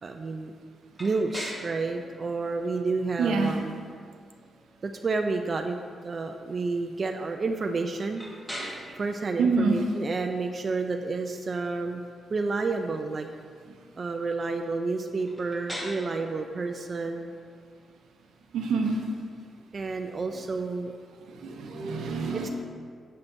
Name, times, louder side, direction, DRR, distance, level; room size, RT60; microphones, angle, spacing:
voice 1, 0.0-0.5 1.0-3.7 4.8-5.8 6.0-8.3 9.0-12.0 12.3-13.3 14.0-17.3 19.7-20.9 22.3-22.5, right 3 dB, 45° right, 5 dB, 0.3 m, -30 dB
sound 1, 0.9-20.7, equal, 15° left, 1.3 m, -46 dB
voice 2, 3.2-3.5 8.6-8.7 9.4-9.8 18.5-19.0 21.4-22.5, right 4 dB, 90° right, 2 dB, 0.7 m, -26 dB
7.3 x 5.9 x 2.6 m, 2.1 s
cardioid pair, 85°, 0 cm